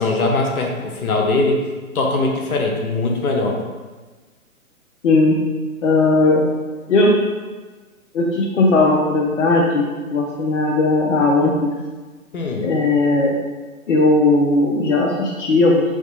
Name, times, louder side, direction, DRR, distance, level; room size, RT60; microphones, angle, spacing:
voice 1, 0.0-1.6 1.9-3.6 12.3-12.7, left 2 dB, 75° left, 1 dB, 1.0 m, -20 dB
voice 2, 5.0-5.4 5.8-6.4 6.9-7.1 8.1-11.7 12.6-13.3 13.9-15.8, left 2 dB, 55° left, -2 dB, 0.8 m, -17 dB
6.0 x 2.8 x 2.7 m, 1.3 s
hypercardioid pair, 140°, 44 cm